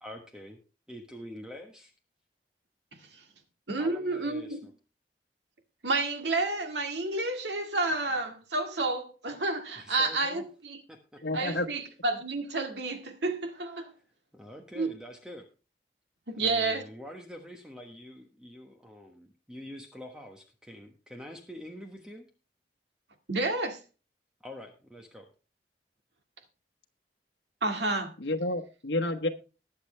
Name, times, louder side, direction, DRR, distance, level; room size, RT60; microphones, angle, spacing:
voice 1, 0.0-0.6 0.9-1.9 3.8-4.7 9.8-10.5 10.9-11.2 14.3-15.5 16.3-22.3 24.4-25.3, equal, 5° right, 1.3 m, -45 dB
voice 2, 3.7-4.7 5.8-10.8 11.3-13.9 14.8-14.9 16.3-16.9 23.3-23.8 27.6-28.1, right 2 dB, 80° right, 2.0 m, -30 dB
voice 3, 11.2-11.7 28.2-29.3, left 2 dB, 85° left, 1.2 m, -29 dB
20.5 x 6.9 x 3.3 m
head